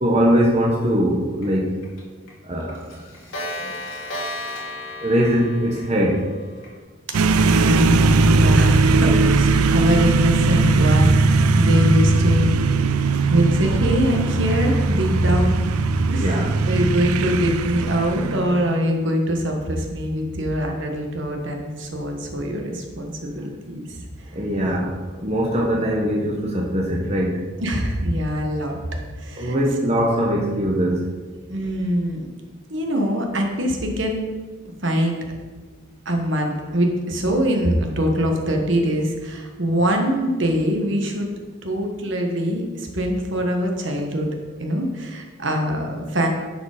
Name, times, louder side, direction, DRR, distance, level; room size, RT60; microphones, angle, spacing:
voice 1, 0.0-1.8 2.5-2.9 3.6-3.7 5.0-6.3 16.2-16.5 24.3-27.5 29.4-31.1, equal, 30° right, -3 dB, 1.0 m, -21 dB
Clock, 1.4-1.5 1.8-2.0 2.3-2.4 2.7-6.7, left 1 dB, 70° left, 2.4 m, -33 dB
sound 1, 7.1-18.9, right 3 dB, 90° right, 0.5 m, -19 dB
voice 2, 7.2-11.1 11.5-12.5 13.3-15.6 16.1-24.0 27.6-28.8 29.2-29.6 31.5-32.3 32.7-34.3 34.8-35.3 36.0-41.3 41.6-44.3 44.6-46.3, equal, 55° right, 2 dB, 1.3 m, -23 dB
10.5 x 5.1 x 5.0 m, 1.4 s
head